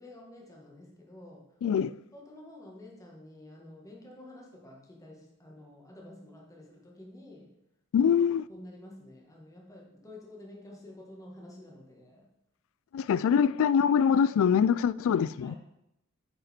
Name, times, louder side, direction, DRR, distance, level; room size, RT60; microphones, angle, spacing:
voice 1, 0.0-1.5 2.1-7.5 8.0-8.1 8.5-12.3 15.4-15.6, left 1 dB, 15° left, 1.6 m, -50 dB
voice 2, 1.6-1.9 7.9-8.4 12.9-15.5, left 7 dB, 65° left, 0.3 m, -24 dB
9.0 x 5.1 x 4.4 m
head